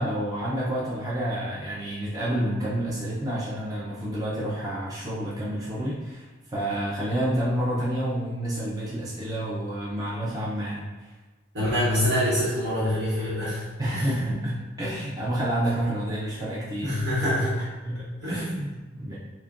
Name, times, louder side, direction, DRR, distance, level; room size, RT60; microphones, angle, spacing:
voice 1, 0.0-10.9 13.8-16.9 17.6-19.2, right 1 dB, 20° right, -7 dB, 0.6 m, -29 dB
voice 2, 11.5-13.6 13.9-14.0 16.8-17.6 18.2-18.6, equal, 65° right, -9 dB, 1.1 m, -25 dB
6.2 x 2.2 x 2.5 m, 1.2 s
head